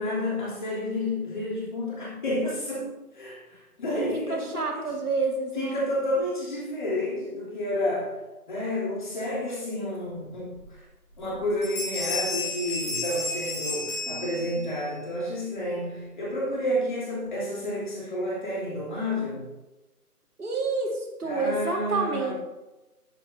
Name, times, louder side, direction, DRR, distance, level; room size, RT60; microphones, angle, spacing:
voice 1, 0.0-4.8 5.5-8.2 8.5-10.8 11.2-19.4 21.2-22.3, left 1 dB, 30° left, -7 dB, 3.2 m, -30 dB
voice 2, 4.3-5.9 14.1-14.7 20.4-22.3, right 3 dB, 70° right, 1 dB, 2.2 m, -29 dB
Bell, 10.6-10.7 11.1-11.4 11.6-14.8, left 3 dB, 10° left, 1.3 m, -32 dB
10.0 x 8.7 x 2.8 m, 1.1 s
figure-of-eight pair, 165°, 46 cm